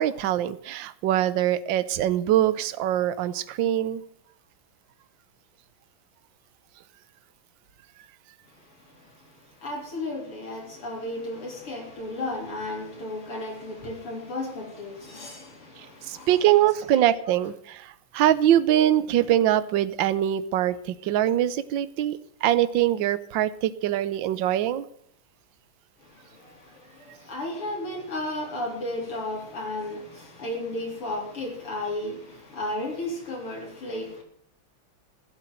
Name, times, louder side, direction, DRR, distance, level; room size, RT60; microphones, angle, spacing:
voice 1, 0.0-4.0 16.1-24.8, right 12 dB, 65° right, 1.5 m, -23 dB
voice 2, 9.6-16.5 26.0-34.2, left 1 dB, 85° left, 4.8 m, -34 dB
15.5 x 8.2 x 9.2 m
omnidirectional pair, 2.4 m